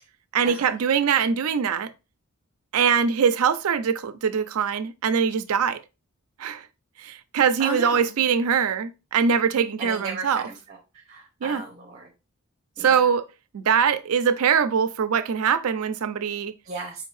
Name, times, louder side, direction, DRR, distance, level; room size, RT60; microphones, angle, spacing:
voice 1, 0.3-1.9 2.7-5.8 6.4-6.7 7.0-10.5 11.4-11.6 12.8-13.2 13.5-16.5, right 7 dB, 75° right, 0.4 m, -22 dB
voice 2, 7.6-8.2 9.8-10.8 11.1-12.1 12.8-13.1 16.7-17.0, right 3 dB, 30° right, 0.7 m, -35 dB
4.9 x 2.6 x 3.1 m
head